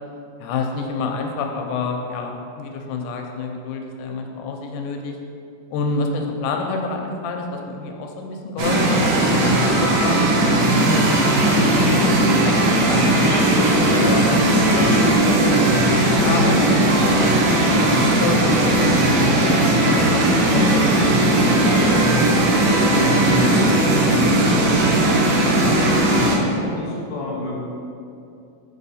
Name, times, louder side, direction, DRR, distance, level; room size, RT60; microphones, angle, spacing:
voice 1, 0.4-5.2 5.7-10.2 10.7-16.6 17.1-21.9 22.3-23.8 24.1-24.8, left 3 dB, 80° left, 2 dB, 2.0 m, -29 dB
sound 1, 8.6-26.4, right 1 dB, 70° right, 1.5 m, -17 dB
voice 2, 17.5-17.8 26.2-27.5, left 2 dB, 50° left, -5 dB, 1.6 m, -32 dB
7.1 x 5.5 x 4.2 m, 2.6 s
omnidirectional pair, 3.8 m